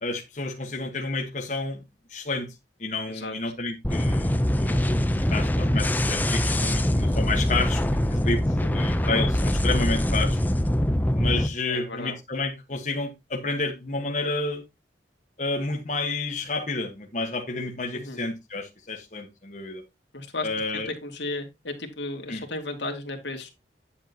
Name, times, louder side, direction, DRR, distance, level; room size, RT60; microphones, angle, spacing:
voice 1, 0.0-1.8 2.1-2.5 2.8-5.0 5.3-7.8 8.1-10.4 11.1-14.6 15.4-19.8 20.4-20.9 22.3-22.4, left 3 dB, 40° left, 1.4 m, -30 dB
sound 1, 3.8-11.5, left 1 dB, 10° left, 0.5 m, -23 dB
voice 2, 11.7-12.2 17.9-18.2 20.1-20.5 20.7-23.5, left 2 dB, 80° left, 2.3 m, -34 dB
10.5 x 7.7 x 2.9 m
head